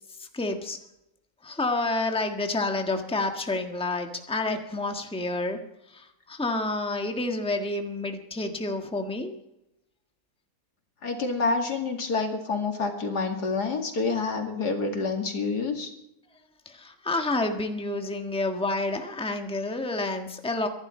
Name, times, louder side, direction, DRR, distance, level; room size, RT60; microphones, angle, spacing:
voice 1, 0.2-0.8 1.4-5.6 5.9-9.3 16.6-20.7, left 2 dB, 5° left, 4 dB, 1.4 m, -29 dB
voice 2, 11.0-15.9, left 4 dB, 85° left, 3 dB, 2.8 m, -28 dB
24.5 x 11.5 x 4.3 m, 0.88 s
omnidirectional pair, 1.7 m